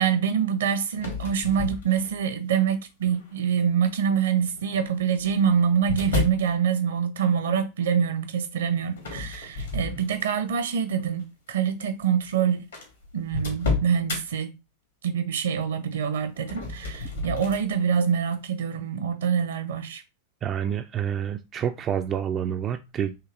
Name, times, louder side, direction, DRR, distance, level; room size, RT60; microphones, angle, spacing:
voice 1, 0.0-12.6 13.1-14.5 15.0-20.0, right 7 dB, 65° right, 0.7 m, -25 dB
sound 1, 0.9-2.4 3.0-3.5 4.6-6.5 9.0-10.5 11.0-11.2 12.0-12.1 12.3-12.4 12.7-14.2 16.3-17.6, left 3 dB, 70° left, 1.4 m, -31 dB
voice 2, 20.4-23.3, right 9 dB, 30° right, 0.3 m, -28 dB
5.8 x 2.9 x 2.5 m
figure-of-eight pair, 90°, 0 cm